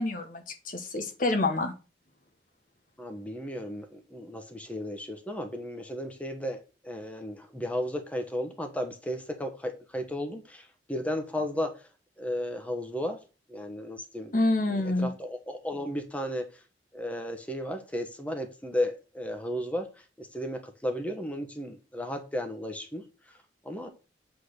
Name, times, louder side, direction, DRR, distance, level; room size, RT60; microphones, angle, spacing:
voice 1, 0.0-1.7 14.3-15.1, left 2 dB, 50° left, 5 dB, 1.1 m, -27 dB
voice 2, 3.0-6.6 6.8-11.8 12.2-13.2 13.5-14.3 14.7-16.6 16.9-19.9 20.2-23.0 23.6-23.9, equal, 10° left, 4 dB, 1.1 m, -34 dB
8.3 x 3.9 x 6.6 m, 0.33 s
head